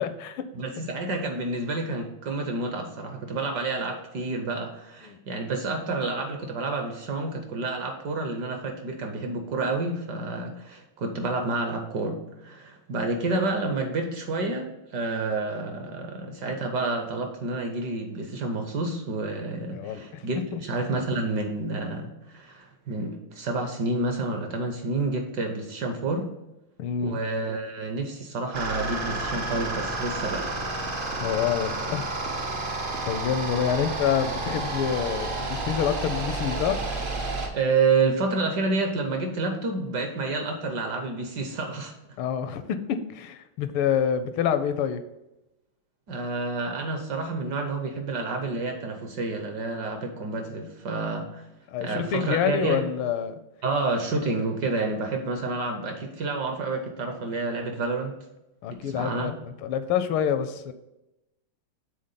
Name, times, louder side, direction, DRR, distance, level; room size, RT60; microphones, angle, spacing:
voice 1, 0.0-0.5 5.1-5.2 19.7-20.2 20.5-20.6 26.8-27.2 31.2-32.1 33.1-36.8 42.2-45.0 51.7-53.4 58.6-60.7, left 8 dB, 80° left, 11 dB, 1.4 m, -27 dB
voice 2, 0.5-26.3 27.0-30.5 37.5-41.9 46.1-51.5 51.8-52.9 53.6-58.1 58.7-59.4, right 3 dB, 65° right, 4 dB, 1.2 m, -29 dB
sound 1, 28.5-37.5, right 2 dB, 85° right, 0.4 m, -30 dB
6.5 x 3.8 x 5.5 m, 0.93 s
omnidirectional pair, 2.4 m